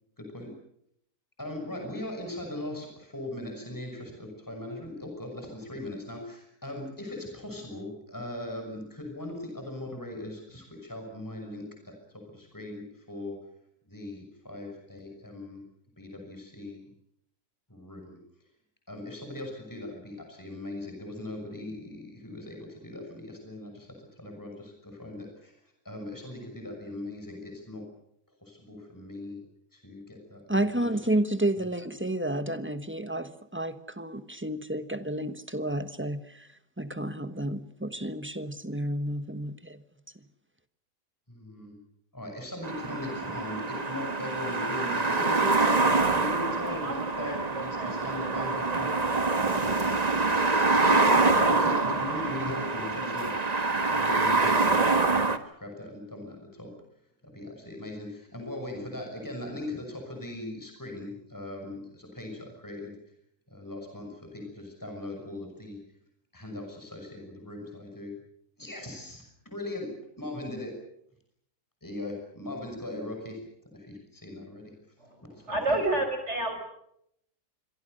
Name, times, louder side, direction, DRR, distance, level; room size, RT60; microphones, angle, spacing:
voice 1, 0.2-0.5 1.4-13.4 13.9-15.6 16.0-16.9 17.7-18.2 18.9-25.5 25.8-27.9 28.4-29.4 29.7-30.9 41.3-41.8 42.1-49.0 50.7-53.4 53.9-56.7 57.2-63.0 63.5-65.8 66.3-68.1 68.6-70.8 71.8-74.7 75.3-76.0, left 1 dB, 10° left, 3 dB, 6.2 m, -39 dB
voice 2, 30.5-36.5 36.8-39.8, right 1 dB, 10° right, 10 dB, 1.2 m, -31 dB
sound 1, 42.6-55.4, right 3 dB, 25° right, 1.5 m, -25 dB
voice 3, 46.8-48.0 48.2-48.3 49.1-49.7 75.5-76.6, right 2 dB, 45° right, 7 dB, 5.7 m, -31 dB
27.0 x 23.5 x 6.6 m, 0.73 s
omnidirectional pair, 1.6 m